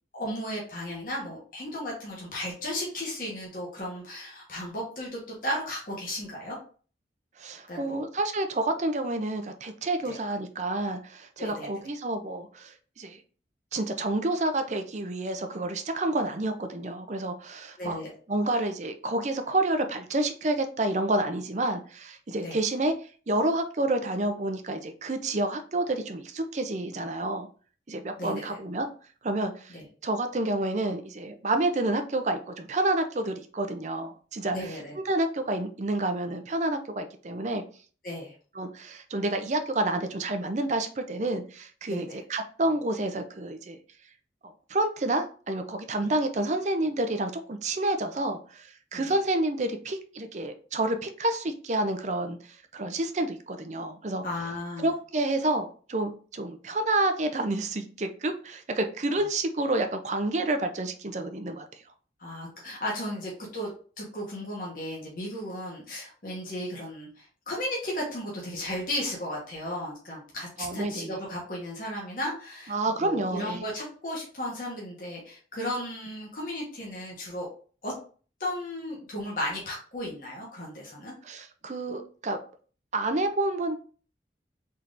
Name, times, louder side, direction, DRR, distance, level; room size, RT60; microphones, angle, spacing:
voice 1, 0.1-6.6 7.7-8.0 10.0-10.2 11.4-11.7 17.8-18.1 22.4-22.6 28.2-28.6 29.7-29.8 34.5-35.0 38.0-38.3 41.9-42.2 46.0-46.1 48.9-49.0 54.2-54.9 62.2-63.7 64.0-77.5 77.8-77.9 78.4-81.1, left 1 dB, 50° left, -3 dB, 1.2 m, -35 dB
voice 2, 7.4-13.2 13.7-18.0 18.3-22.9 23.3-27.5 27.9-28.9 29.2-29.7 30.0-34.8 35.0-37.6 38.6-43.8 44.4-54.2 54.8-61.6 70.6-71.1 72.7-73.6 81.2-82.4 82.9-83.8, right 2 dB, 40° right, 7 dB, 0.5 m, -29 dB
4.3 x 3.7 x 2.5 m, 0.40 s
head